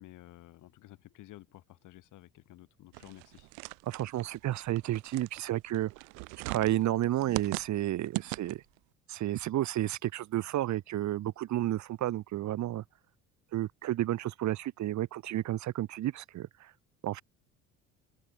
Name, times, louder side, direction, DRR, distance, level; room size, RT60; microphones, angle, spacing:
voice 1, 0.0-3.5, left 16 dB, 70° left, 6.4 m, -53 dB
sound 1, 2.9-8.8, right 37 dB, 90° right, 3.6 m, -40 dB
voice 2, 3.8-5.9 6.5-8.6 9.1-12.8 13.5-16.7 17.0-17.2, right 14 dB, 60° right, 1.7 m, -31 dB
open air
supercardioid pair, 85°, 32 cm